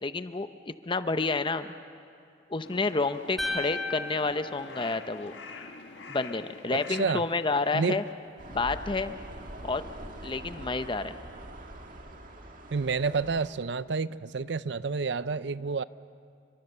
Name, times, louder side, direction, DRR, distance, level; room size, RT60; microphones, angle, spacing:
voice 1, 0.0-1.7 2.5-5.3 6.1-8.0 8.5-9.1 9.6-9.8 10.2-11.2, left 3 dB, 25° left, 0.7 m, -29 dB
Crow, 2.6-8.1, left 4 dB, 75° left, 1.5 m, -46 dB
sound 1, 3.4-5.6, left 2 dB, ahead, 1.8 m, -36 dB
voice 2, 6.7-7.2 7.7-8.0 12.7-15.8, right 4 dB, 65° right, 0.6 m, -29 dB
sound 2, 8.4-13.6, right 1 dB, 45° right, 1.9 m, -44 dB
29.0 x 25.0 x 6.8 m
head